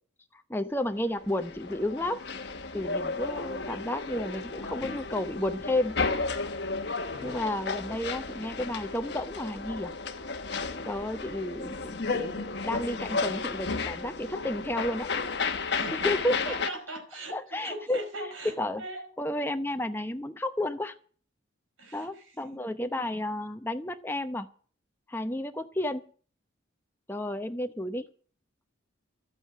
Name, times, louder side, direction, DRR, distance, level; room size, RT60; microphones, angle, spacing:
voice 1, 0.5-2.2 2.7-6.0 7.2-9.9 10.8-15.1 16.0-16.5 17.3-18.0 18.6-18.8 19.2-20.9 21.9-24.5 25.1-26.0 27.1-28.1, left 1 dB, 10° left, 8 dB, 0.8 m, -32 dB
sound 1, 1.1-16.7, left 4 dB, 55° left, 1.2 m, -33 dB
voice 2, 15.8-19.1 21.8-22.3, right 1 dB, 85° right, 5 dB, 5.2 m, -40 dB
12.5 x 8.8 x 8.7 m, 0.44 s
head